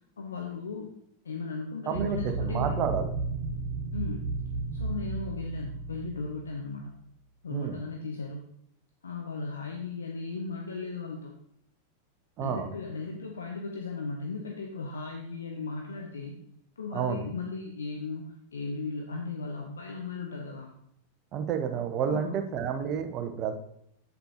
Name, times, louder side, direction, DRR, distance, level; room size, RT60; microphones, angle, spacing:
voice 1, 0.2-0.9 1.2-2.9 3.9-4.3 4.7-6.9 7.4-8.5 9.0-11.4 12.4-16.4 16.8-20.7 22.1-22.4, left 4 dB, 70° left, 2 dB, 0.8 m, -36 dB
voice 2, 1.9-3.1 7.5-7.8 12.4-12.7 16.9-17.2 21.3-23.5, right 7 dB, 35° right, 7 dB, 0.9 m, -30 dB
sound 1, 1.9-6.6, right 3 dB, 65° right, 1.6 m, -33 dB
8.2 x 7.9 x 2.8 m, 0.73 s
figure-of-eight pair, 90°, 0 cm